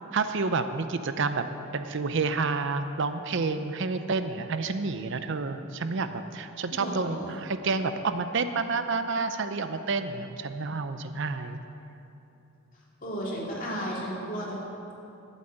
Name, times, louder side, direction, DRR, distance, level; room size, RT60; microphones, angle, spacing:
voice 1, 0.1-1.5 1.7-11.6, right 4 dB, 60° right, 9 dB, 0.6 m, -29 dB
voice 2, 6.7-7.3 13.0-14.6, equal, 40° left, -5 dB, 3.1 m, -34 dB
12.0 x 8.3 x 7.8 m, 2.9 s
head